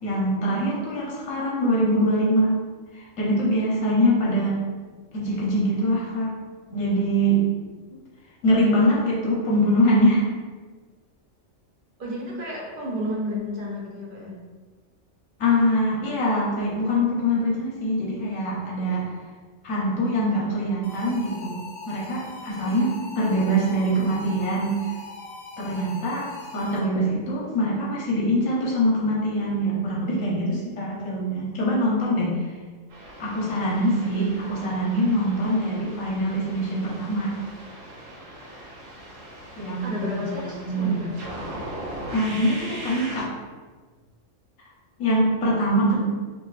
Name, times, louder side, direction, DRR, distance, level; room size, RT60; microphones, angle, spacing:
voice 1, 0.0-2.6 2.9-4.6 5.1-6.4 6.7-7.5 8.4-10.3 15.4-19.1 19.6-21.6 21.9-24.8 25.6-26.3 26.5-32.4 33.2-37.4 39.6-40.3 40.6-41.1 42.1-43.3 45.0-46.0, equal, 85° left, -4 dB, 1.3 m, -23 dB
voice 2, 12.0-14.4 22.5-22.8 39.8-41.1, left 1 dB, 45° right, -3 dB, 1.0 m, -32 dB
sound 1, 20.8-27.1, left 3 dB, 70° left, 1.0 m, -40 dB
sound 2, 32.9-43.2, right 1 dB, 80° right, 1.3 m, -40 dB
6.2 x 2.6 x 2.5 m, 1.4 s
omnidirectional pair, 1.3 m